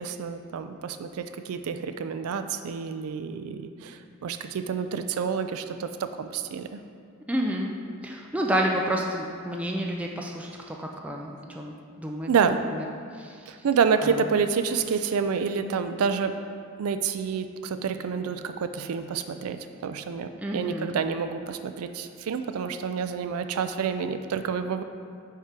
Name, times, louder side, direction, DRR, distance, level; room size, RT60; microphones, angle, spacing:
voice 1, 0.0-6.8 12.3-12.6 13.5-16.4 16.8-24.8, right 6 dB, 85° right, 9 dB, 0.4 m, -28 dB
voice 2, 7.3-7.7 8.0-12.9 13.1-13.6 14.0-14.3 20.4-21.0, equal, 5° right, 0 dB, 0.4 m, -30 dB
5.7 x 4.7 x 5.9 m, 2.3 s
head